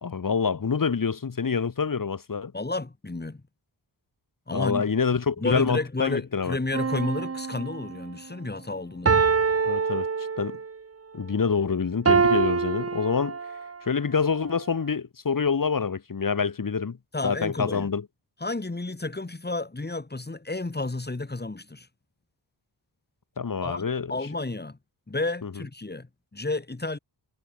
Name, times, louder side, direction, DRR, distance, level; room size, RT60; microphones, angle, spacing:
voice 1, 0.0-2.5 4.5-6.6 9.6-10.1 10.4-10.6 11.1-13.4 13.8-17.0 17.2-18.0 23.4-24.1 25.4-25.5, left 5 dB, 50° left, 2.6 m, -26 dB
voice 2, 2.5-3.4 4.5-4.8 5.4-9.3 17.1-17.9 18.4-21.9 23.6-24.8 25.1-27.0, left 2 dB, 25° left, 4.7 m, -31 dB
sound 1, 6.7-8.1 9.1-10.7 12.1-13.8 14.4-14.5, right 5 dB, 35° right, 1.2 m, -25 dB
wide cardioid pair, 100°, 42 cm